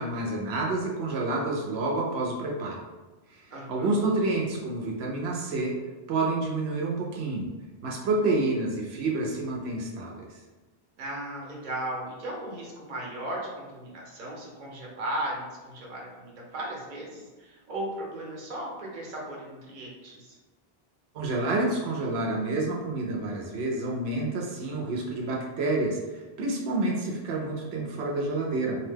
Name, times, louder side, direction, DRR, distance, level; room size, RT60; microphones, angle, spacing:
voice 1, 0.0-2.8 3.3-3.4 3.7-5.7 6.1-7.5 7.8-10.3 21.1-28.8, right 2 dB, 85° right, -1 dB, 0.8 m, -28 dB
voice 2, 3.5-4.1 11.0-20.4, right 1 dB, 50° right, -3 dB, 0.8 m, -36 dB
2.7 x 2.1 x 3.2 m, 1.2 s
omnidirectional pair, 1.0 m